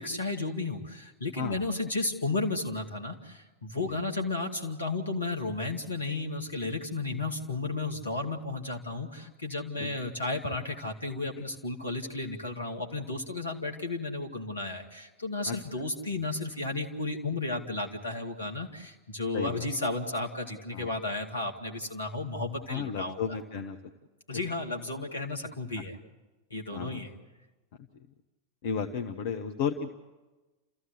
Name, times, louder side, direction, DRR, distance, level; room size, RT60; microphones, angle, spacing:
voice 1, 0.0-23.2 24.3-26.0 26.5-27.1, left 2 dB, 75° left, 3 dB, 2.3 m, -33 dB
voice 2, 19.3-19.7 20.7-20.9 22.7-23.8 26.7-27.0 28.6-29.9, left 6 dB, 50° left, 6 dB, 1.0 m, -33 dB
29.5 x 14.5 x 8.1 m, 1.2 s
figure-of-eight pair, 90°, 0 cm